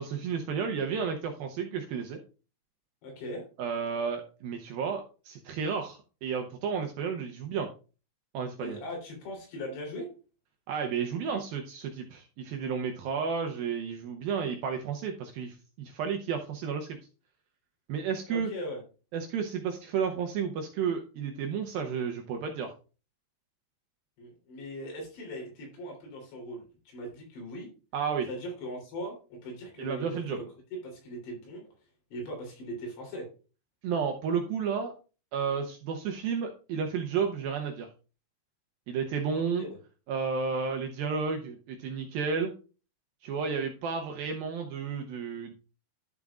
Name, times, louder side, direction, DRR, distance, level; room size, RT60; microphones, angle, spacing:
voice 1, 0.0-2.2 3.6-7.7 8.3-8.8 10.7-17.0 17.9-18.5 19.1-22.7 27.9-28.3 29.8-30.4 33.8-34.9 35.3-37.9 38.9-39.7 40.1-42.5 43.2-45.5, right 6 dB, 75° right, 4 dB, 2.2 m, -32 dB
voice 2, 3.0-3.5 8.6-10.1 18.3-18.8 24.2-27.7 28.3-30.5 30.7-31.6 32.1-33.3 39.3-39.8, equal, 80° left, 0 dB, 5.7 m, -39 dB
12.0 x 7.2 x 2.4 m, 0.35 s
omnidirectional pair, 5.0 m